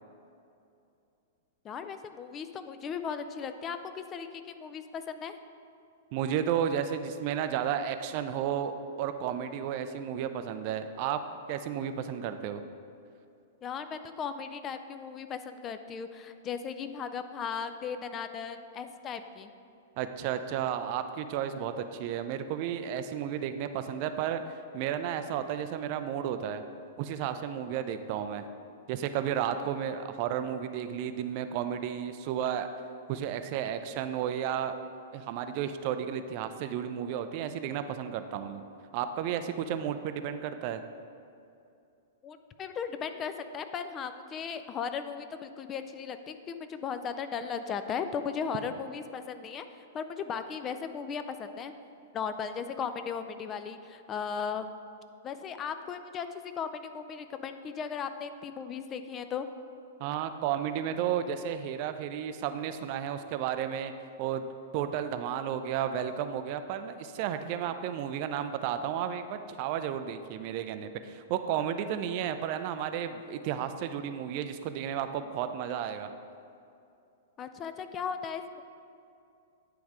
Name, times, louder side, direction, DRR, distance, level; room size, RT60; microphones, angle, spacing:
voice 1, 1.6-5.3 13.6-19.5 42.2-51.7 52.1-54.7 55.2-59.5 77.4-78.6, left 6 dB, 25° left, 9 dB, 0.4 m, -37 dB
voice 2, 6.1-11.2 11.5-12.6 20.0-24.4 24.7-26.6 27.0-28.4 28.9-32.7 33.1-34.8 35.1-38.6 38.9-40.8 60.0-63.9 64.2-64.5 64.7-76.1, right 9 dB, 45° right, 9 dB, 0.4 m, -32 dB
9.3 x 3.4 x 4.8 m, 2.6 s
figure-of-eight pair, 105°, 0 cm